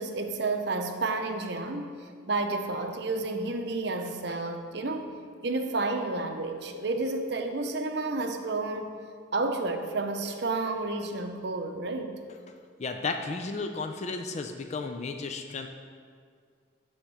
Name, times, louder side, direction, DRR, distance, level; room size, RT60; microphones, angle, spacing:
voice 1, 0.0-1.9 2.3-5.1 5.4-8.9 9.3-12.1, right 3 dB, 55° right, 6 dB, 0.7 m, -31 dB
voice 2, 12.8-15.7, left 3 dB, 35° left, 5 dB, 0.4 m, -33 dB
9.9 x 3.6 x 7.0 m, 2.1 s
head